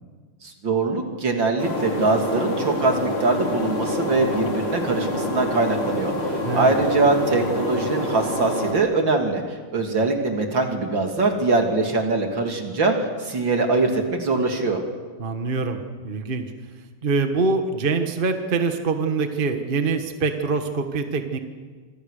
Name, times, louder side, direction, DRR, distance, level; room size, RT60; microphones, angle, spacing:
voice 1, 0.4-14.8, right 3 dB, 65° right, 3 dB, 3.6 m, -22 dB
sound 1, 1.6-8.7, left 1 dB, 85° left, 4.9 m, -27 dB
voice 2, 6.4-6.8 15.2-15.8 16.0-16.4 17.0-21.4, right 4 dB, 30° right, 6 dB, 1.5 m, -24 dB
26.5 x 25.5 x 6.7 m, 1.5 s
omnidirectional pair, 2.3 m